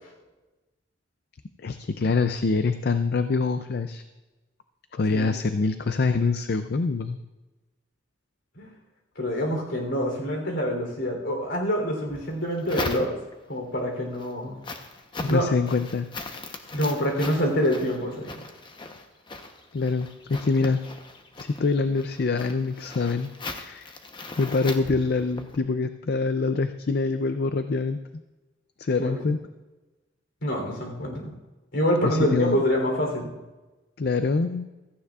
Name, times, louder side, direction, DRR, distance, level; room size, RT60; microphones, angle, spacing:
voice 1, 1.6-4.0 4.9-7.2 15.2-16.1 19.7-20.8 21.4-23.9 24.4-28.0 28.8-29.4 32.0-32.6 34.0-34.7, left 4 dB, 55° left, 9 dB, 0.5 m, -25 dB
voice 2, 9.1-13.2 13.5-14.6 15.3-15.5 16.7-18.3 29.0-29.3 30.4-31.3 31.7-33.3, equal, 70° left, 1 dB, 3.4 m, -26 dB
sound 1, 12.1-13.5 14.0-25.6, left 2 dB, 25° left, 0.9 m, -39 dB
16.0 x 14.5 x 2.4 m, 1.1 s
head